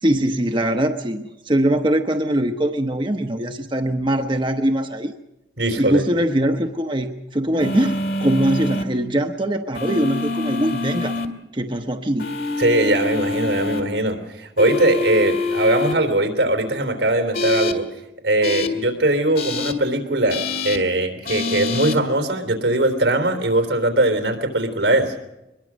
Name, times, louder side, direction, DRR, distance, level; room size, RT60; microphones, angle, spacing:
voice 1, 0.0-5.1 5.8-11.1 11.5-12.3, right 1 dB, 25° right, 5 dB, 0.9 m, -22 dB
voice 2, 5.6-6.0 12.6-17.9 18.2-25.1, right 1 dB, 85° right, 6 dB, 3.7 m, -20 dB
sound 1, 7.6-8.8 9.7-11.3 12.2-13.8 14.6-15.9 17.3-17.7 18.4-18.7 19.4-19.7 20.3-20.8 21.3-21.9, left 3 dB, 55° left, 2.2 m, -25 dB
22.5 x 21.5 x 6.3 m, 0.96 s
head